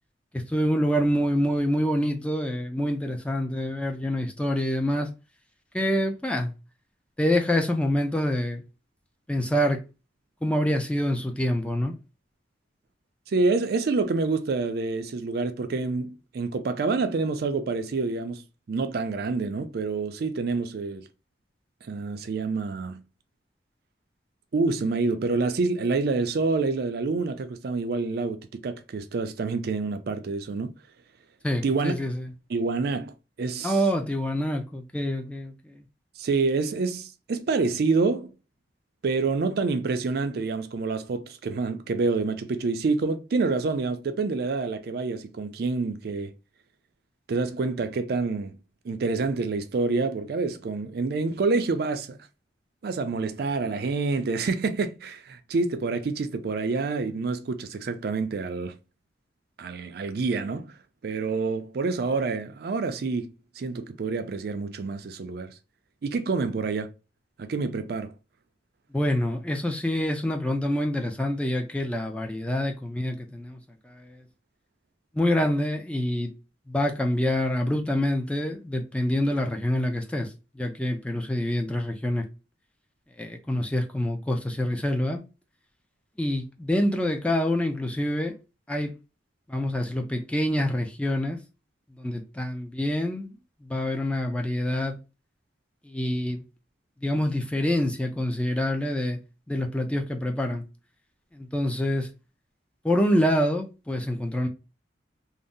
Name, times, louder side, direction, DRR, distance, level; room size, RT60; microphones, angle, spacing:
voice 1, 0.3-5.1 5.7-6.5 7.2-8.6 9.3-9.8 10.4-11.9 31.4-32.3 33.6-35.8 68.9-73.6 75.1-76.3 76.7-80.3 80.6-82.3 83.2-85.2 86.2-88.3 88.7-88.9 89.5-91.4 92.0-93.3 93.6-95.0 95.9-96.4 97.0-99.2 99.5-100.6 101.3-102.1 102.8-104.5, left 1 dB, 5° left, 0.4 m, -26 dB
voice 2, 13.3-18.4 18.7-21.1 21.8-23.0 24.5-30.7 31.6-31.9 32.5-33.1 33.4-33.8 36.2-38.3 39.0-46.3 47.3-48.6 48.8-52.2 52.8-58.7 59.6-60.7 61.0-65.5 66.0-66.9 67.4-68.1, right 3 dB, 60° right, 0.4 m, -27 dB
2.6 x 2.0 x 3.5 m
head